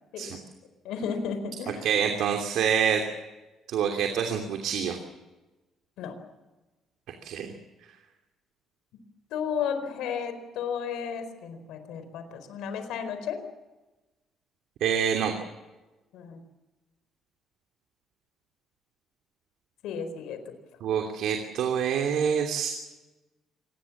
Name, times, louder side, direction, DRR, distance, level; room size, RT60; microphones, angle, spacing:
voice 1, 0.8-1.9 6.0-6.2 9.3-13.4 16.1-16.4 19.8-20.4, left 7 dB, 85° left, 8 dB, 4.4 m, -33 dB
voice 2, 1.8-3.0 3.7-5.0 7.2-7.5 14.8-15.3 20.8-22.7, right 8 dB, 65° right, 4 dB, 2.9 m, -26 dB
26.5 x 20.5 x 7.3 m, 1.1 s
cardioid pair, 165°, 0 cm